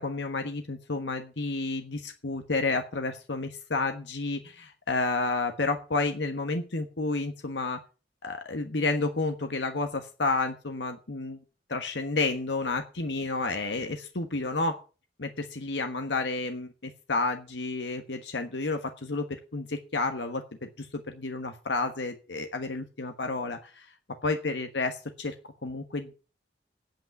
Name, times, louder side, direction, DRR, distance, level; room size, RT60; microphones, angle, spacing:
voice 1, 0.0-7.8 8.2-11.4 11.7-14.8 15.2-23.9 24.2-25.3 25.6-26.1, left 3 dB, 75° left, 6 dB, 1.3 m, -31 dB
8.8 x 8.4 x 8.8 m, 0.35 s
head